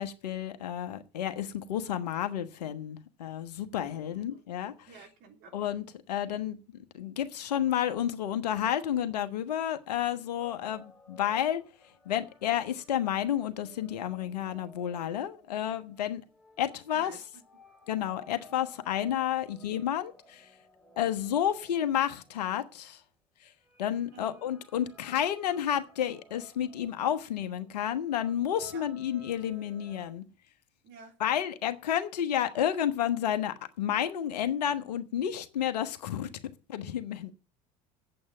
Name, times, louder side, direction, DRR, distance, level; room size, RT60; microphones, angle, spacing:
voice 1, 0.0-4.9 5.5-11.6 12.0-16.2 16.6-17.1 17.9-20.5 21.0-23.0 23.4-23.5 23.8-30.2 31.2-36.3 36.7-37.3, left 10 dB, 75° left, 1.3 m, -31 dB
voice 2, 3.9-4.4 4.8-5.8 16.9-17.2 19.6-19.7 24.1-24.4 28.7-28.8 30.8-31.2, right 5 dB, 55° right, 3.3 m, -52 dB
sound 1, 10.4-22.9 23.6-30.1, equal, ahead, 3.5 m, -57 dB
8.5 x 7.8 x 8.8 m
hypercardioid pair, 70°, 21 cm